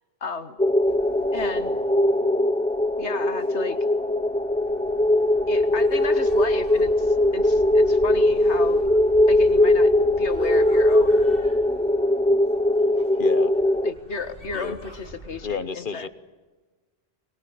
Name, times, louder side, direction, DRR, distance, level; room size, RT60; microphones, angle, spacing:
voice 1, 0.2-0.6 1.3-1.8 3.0-3.8 5.5-8.8 9.3-9.9 10.2-11.3 13.8-16.1, left 4 dB, 75° left, 10 dB, 1.9 m, -33 dB
sound 1, 0.6-13.9, left 1 dB, 5° left, 0.6 m, -20 dB
sound 2, 0.8-15.5, right 1 dB, 50° right, 6.9 m, -45 dB
voice 2, 13.2-13.5 14.5-14.8 15.4-16.1, left 5 dB, 50° left, 13 dB, 1.2 m, -31 dB
23.0 x 21.5 x 8.8 m, 1.3 s
omnidirectional pair, 1.2 m